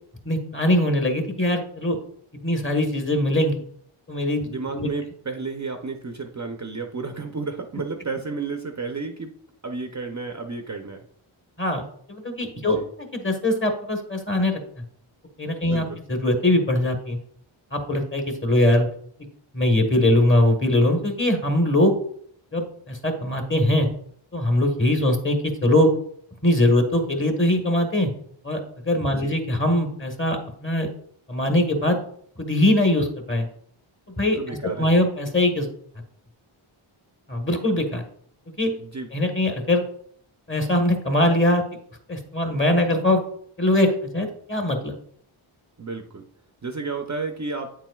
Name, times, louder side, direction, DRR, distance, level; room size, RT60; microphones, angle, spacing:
voice 1, 0.2-2.0 2.4-3.6 4.1-4.9 11.6-14.8 15.4-17.2 17.7-18.9 19.5-21.9 22.5-23.9 24.3-25.9 26.4-28.1 28.4-28.6 28.8-30.9 31.3-32.0 32.4-33.5 34.2-35.7 37.3-38.0 38.6-38.7 39.1-39.8 40.5-41.6 42.1-43.2 43.6-45.0, left 1 dB, 25° left, 4 dB, 1.3 m, -22 dB
voice 2, 4.4-9.3 9.6-11.0 12.6-12.9 15.6-16.0 29.0-29.4 34.4-34.9 38.8-39.1 45.8-46.3 46.6-47.7, right 4 dB, 35° right, 4 dB, 0.7 m, -32 dB
8.7 x 7.4 x 2.3 m, 0.63 s
wide cardioid pair, 105°, 50 cm